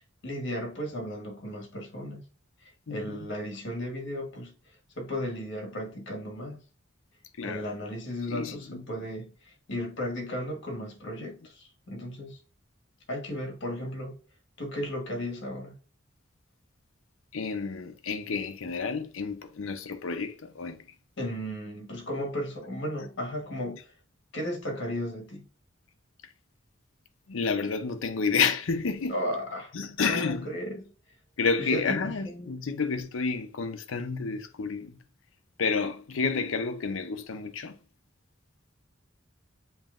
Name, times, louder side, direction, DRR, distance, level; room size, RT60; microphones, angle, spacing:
voice 1, 0.2-2.2 2.6-4.5 5.0-6.6 7.4-12.4 13.1-14.2 14.6-15.8 21.2-23.8 24.3-25.5 29.1-29.7 30.0-30.9 31.6-32.5, equal, 60° left, 1.3 m, -35 dB
voice 2, 2.9-3.2 7.4-7.6 8.3-8.8 17.3-20.9 27.3-29.2 29.7-30.6 31.4-35.0 35.6-37.7, left 5 dB, 75° left, 0.6 m, -30 dB
7.2 x 2.9 x 2.4 m
head